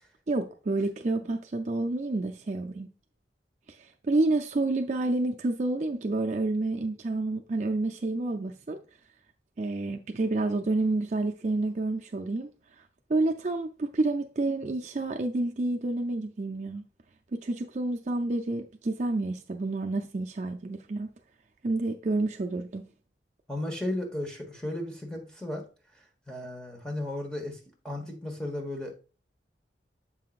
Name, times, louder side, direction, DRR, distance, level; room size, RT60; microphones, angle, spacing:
voice 1, 0.3-2.9 3.7-8.8 9.6-12.5 13.1-16.8 17.3-21.1 21.6-22.9, right 2 dB, 40° right, 0.4 m, -29 dB
voice 2, 23.5-25.6 26.3-27.6 27.8-28.9, left 1 dB, 5° left, 1.3 m, -34 dB
7.5 x 5.6 x 2.5 m
head